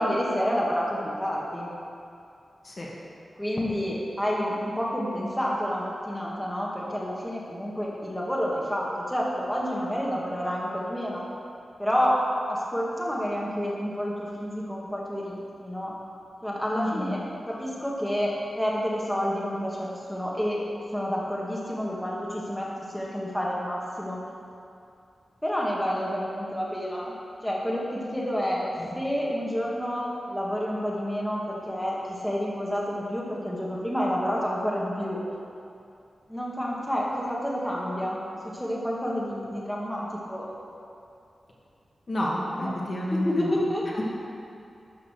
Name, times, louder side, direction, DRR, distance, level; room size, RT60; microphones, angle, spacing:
voice 1, 0.0-1.7 3.3-11.2 11.8-12.2 12.5-15.9 16.4-20.6 20.9-22.7 22.9-24.2 25.4-27.1 27.4-28.7 28.9-35.2 36.3-38.2 38.4-40.5 42.5-42.7 43.1-44.0, equal, 5° left, -5 dB, 1.7 m, -29 dB
voice 2, 16.8-17.1 28.8-28.9 42.1-43.5, left 1 dB, 45° left, -4 dB, 1.9 m, -30 dB
12.0 x 5.6 x 6.5 m, 2.5 s
wide cardioid pair, 110°, 0 cm